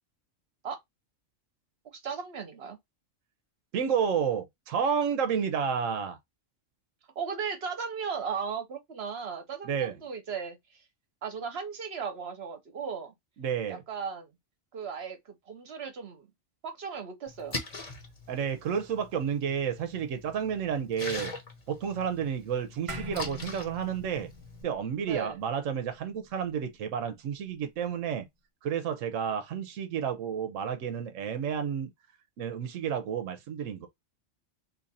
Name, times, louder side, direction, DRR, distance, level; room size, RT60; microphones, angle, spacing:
voice 1, 1.9-2.8 7.2-10.8 11.2-13.1 13.7-14.3 14.7-16.3 16.6-17.6 25.0-25.4, right 6 dB, 55° right, 1.0 m, -36 dB
voice 2, 3.7-6.2 9.6-10.0 13.4-13.8 18.3-21.3 21.7-24.3 24.6-28.3 28.6-31.9 32.4-33.9, right 7 dB, 90° right, 1.0 m, -31 dB
Splash splatter, 17.3-24.6, left 3 dB, 35° left, 0.9 m, -42 dB
sound 1, 22.9-27.5, equal, 30° right, 0.8 m, -45 dB
2.8 x 2.5 x 4.0 m
omnidirectional pair, 1.3 m